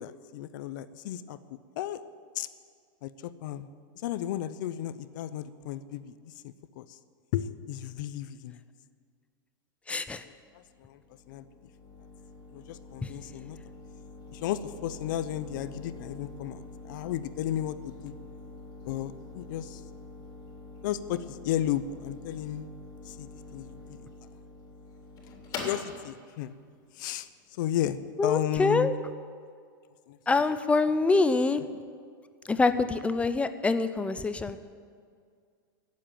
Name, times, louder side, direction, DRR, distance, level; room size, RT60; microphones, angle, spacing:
voice 1, 0.0-2.0 2.3-2.5 3.0-3.7 4.0-7.0 7.3-8.6 10.2-11.0 11.3-11.4 12.5-13.6 14.3-18.1 18.8-19.8 20.8-22.7 23.1-24.0 25.6-26.6 26.9-28.9 30.1-30.2, left 11 dB, 65° left, 14 dB, 0.8 m, -34 dB
voice 2, 9.9-10.2 13.0-13.1 28.2-28.9 30.3-31.6 32.4-34.6, left 3 dB, 10° left, 11 dB, 0.6 m, -25 dB
sound 1, 10.4-28.1, left 3 dB, 35° left, 3.4 m, -46 dB
17.5 x 7.6 x 9.3 m, 2.1 s
supercardioid pair, 130°, 11 cm